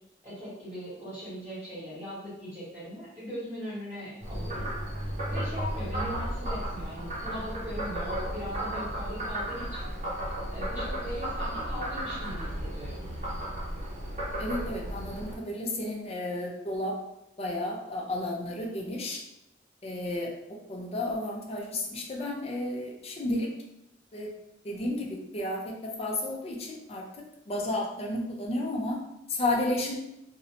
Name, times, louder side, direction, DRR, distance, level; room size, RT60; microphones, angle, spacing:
voice 1, 0.2-4.7 5.3-9.9 10.5-13.0, equal, 10° right, -13 dB, 1.1 m, -39 dB
Frog, 4.2-15.4, right 1 dB, 40° right, 0.7 m, -34 dB
voice 2, 14.4-17.0 17.4-19.2 19.8-20.3 20.7-23.5 24.1-24.3 24.6-27.0 27.5-29.0 29.3-30.0, left 1 dB, 35° left, 0 dB, 0.5 m, -32 dB
2.6 x 2.1 x 2.8 m, 0.85 s
head